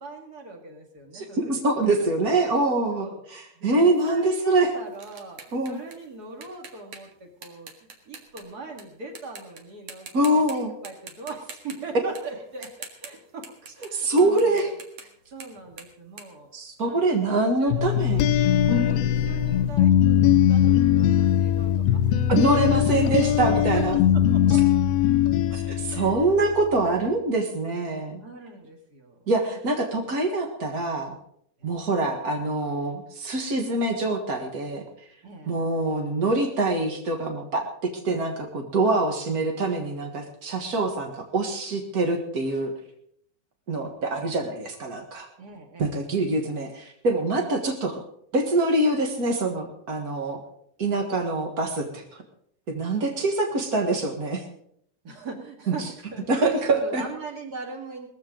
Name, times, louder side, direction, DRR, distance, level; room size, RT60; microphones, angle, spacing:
voice 1, 0.0-2.4 2.9-3.2 3.6-7.7 8.1-12.7 13.0-13.5 13.8-14.7 15.3-16.5 16.8-18.2 18.9-22.2 22.6-24.6 25.9-26.4 28.2-29.2 31.6-31.8 35.2-35.5 45.4-45.9 53.0-53.3 55.0-58.1, right 3 dB, 30° right, 2 dB, 2.1 m, -41 dB
voice 2, 1.1-4.7 5.5-5.8 10.1-10.7 13.9-14.7 16.5-18.2 18.7-18.9 19.2-19.3 22.3-23.9 25.5-28.2 29.3-31.2 31.6-34.8 35.5-42.7 43.7-45.3 45.8-48.0 48.3-50.4 50.8-52.2 52.7-54.4 56.3-57.0, right 2 dB, 70° right, 3 dB, 0.8 m, -25 dB
sound 1, 3.9-8.8 9.2-9.6 9.9-10.5 10.8-17.2, right 5 dB, 50° right, 2.4 m, -45 dB
sound 2, 17.7-26.4, left 10 dB, 90° left, 2.7 m, -20 dB
19.0 x 14.5 x 3.9 m, 0.69 s
omnidirectional pair, 4.3 m